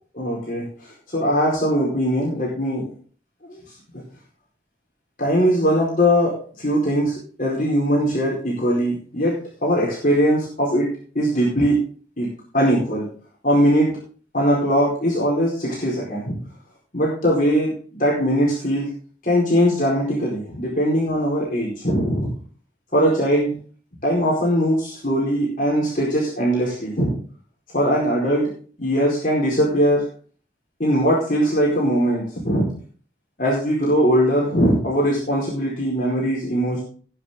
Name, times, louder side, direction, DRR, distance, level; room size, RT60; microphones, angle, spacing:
voice 1, 0.1-0.6 1.1-2.8 3.5-3.6 5.2-9.3 9.6-10.9 11.1-11.8 12.2-12.3 12.5-13.1 13.4-13.9 14.3-16.4 16.9-17.7 18.0-18.9 19.2-22.3 22.9-23.5 24.0-27.1 27.7-28.5 28.8-30.1 30.8-32.7 33.4-36.8, equal, 50° left, -5 dB, 4.6 m, -20 dB
19.0 x 7.0 x 3.8 m, 0.42 s
head